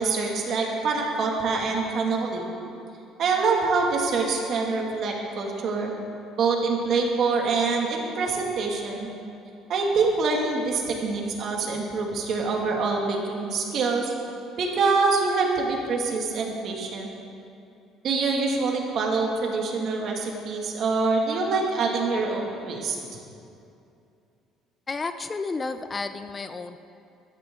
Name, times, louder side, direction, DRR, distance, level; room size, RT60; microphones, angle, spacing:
voice 1, 0.0-2.5 3.2-5.9 6.4-9.1 9.7-14.1 14.6-17.1 18.0-23.0, right 4 dB, 55° right, 0 dB, 2.2 m, -25 dB
voice 2, 24.9-26.9, left 4 dB, 25° left, 10 dB, 0.5 m, -32 dB
15.0 x 12.5 x 3.8 m, 2.6 s
cardioid pair, 110°, 0 cm